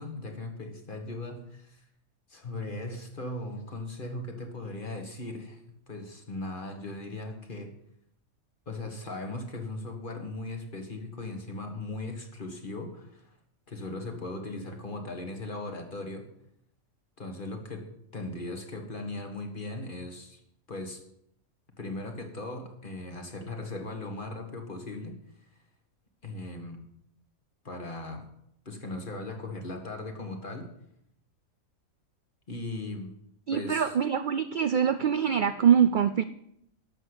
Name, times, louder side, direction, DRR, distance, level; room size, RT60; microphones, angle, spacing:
voice 1, 0.0-1.8 2.3-7.7 8.7-13.3 13.7-16.3 17.2-20.4 20.7-21.0 21.8-25.2 26.2-26.8 27.6-28.3 28.7-30.7 32.5-33.1 33.5-33.9, left 2 dB, 40° left, 4 dB, 1.8 m, -38 dB
voice 2, 33.5-36.2, right 8 dB, 65° right, 12 dB, 0.5 m, -24 dB
12.0 x 6.6 x 8.0 m, 0.75 s
omnidirectional pair, 1.4 m